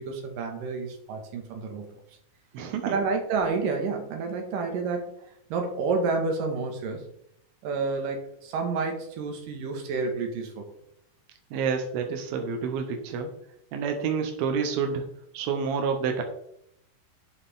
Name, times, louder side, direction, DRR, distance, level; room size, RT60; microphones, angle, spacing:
voice 1, 0.0-2.0 2.8-7.1 7.6-10.7, right 4 dB, 70° right, 3 dB, 3.3 m, -30 dB
voice 2, 2.5-3.1 11.5-13.3 13.7-15.1 15.3-16.2, right 6 dB, 90° right, 4 dB, 2.9 m, -28 dB
11.0 x 7.2 x 3.7 m, 0.72 s
omnidirectional pair, 4.1 m